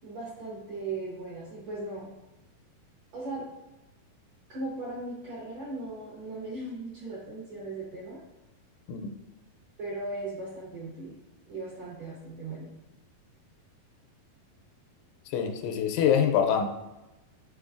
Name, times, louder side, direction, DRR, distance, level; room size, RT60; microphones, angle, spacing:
voice 1, 0.0-2.1 3.1-3.5 4.5-8.2 9.8-11.2 11.5-12.7, right 2 dB, 65° right, -7 dB, 1.6 m, -38 dB
voice 2, 15.3-16.7, left 8 dB, 90° left, 4 dB, 2.6 m, -25 dB
5.4 x 3.9 x 2.5 m, 0.99 s
omnidirectional pair, 4.4 m